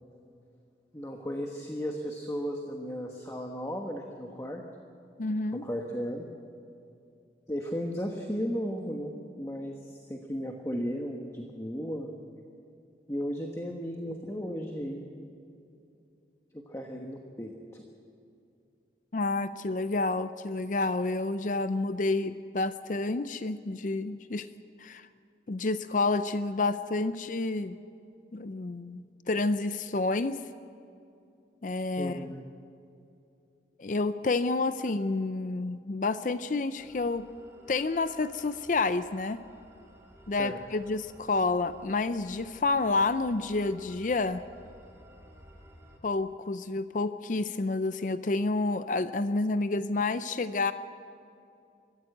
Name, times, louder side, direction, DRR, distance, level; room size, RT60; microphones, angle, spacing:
voice 1, 0.9-4.6 5.5-6.3 7.5-12.1 13.1-15.1 16.5-17.9 32.0-32.4 40.4-40.6, equal, 15° left, 2 dB, 1.2 m, -35 dB
voice 2, 5.2-5.6 19.1-24.5 24.8-25.1 25.5-27.7 28.3-30.4 31.6-32.2 33.8-37.3 37.7-39.4 40.3-44.4 46.0-50.7, left 3 dB, 45° left, 12 dB, 0.5 m, -29 dB
sound 1, 36.8-46.0, right 1 dB, 15° right, 2.7 m, -55 dB
23.0 x 15.0 x 7.9 m, 2.6 s
head